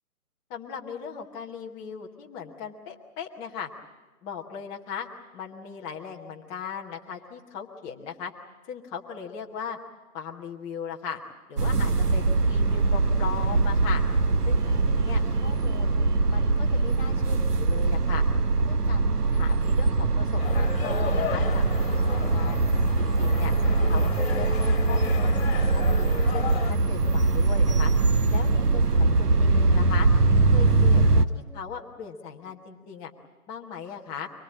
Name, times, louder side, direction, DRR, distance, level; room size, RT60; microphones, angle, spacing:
voice 1, 0.5-3.7 4.2-5.1 5.3-8.3 8.7-9.8 10.1-11.2 11.5-14.0 14.4-16.0 16.3-18.3 18.7-22.6 23.0-23.5 23.8-26.4 26.7-27.9 28.3-30.1 30.5-33.1 33.5-34.3, left 7 dB, 10° left, 0 dB, 0.9 m, -38 dB
sound 1, 11.6-31.3, right 3 dB, 85° right, 1.3 m, -22 dB
sound 2, 20.4-26.7, left 6 dB, 40° left, 2.1 m, -35 dB
25.0 x 19.5 x 8.8 m, 1.2 s
figure-of-eight pair, 150°, 46 cm